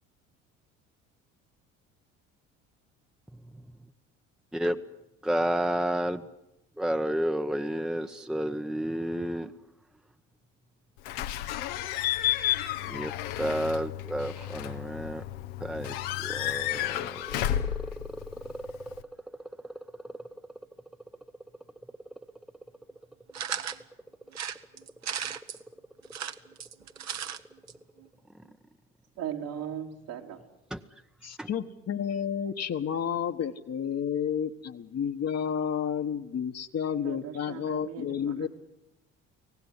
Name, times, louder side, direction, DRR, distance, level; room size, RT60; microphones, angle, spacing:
voice 1, 5.2-6.3 6.8-9.5 12.9-15.2 15.6-18.6 20.0-20.1 30.7-30.8 31.4-31.5, right 1 dB, ahead, 8 dB, 1.0 m, -31 dB
Slam / Squeak / Alarm, 11.0-19.0, left 13 dB, 70° left, 1.2 m, -32 dB
sound 1, 23.3-23.8 24.3-25.6 26.0-27.4 27.7-27.8 28.0-28.1, right 9 dB, 45° right, 1.3 m, -35 dB
voice 2, 29.2-30.4 37.0-38.5, right 9 dB, 65° right, 1 dB, 3.3 m, -38 dB
voice 3, 31.2-38.5, left 8 dB, 40° left, 7 dB, 1.5 m, -31 dB
25.0 x 18.0 x 10.0 m, 0.88 s
hypercardioid pair, 60°, 38 cm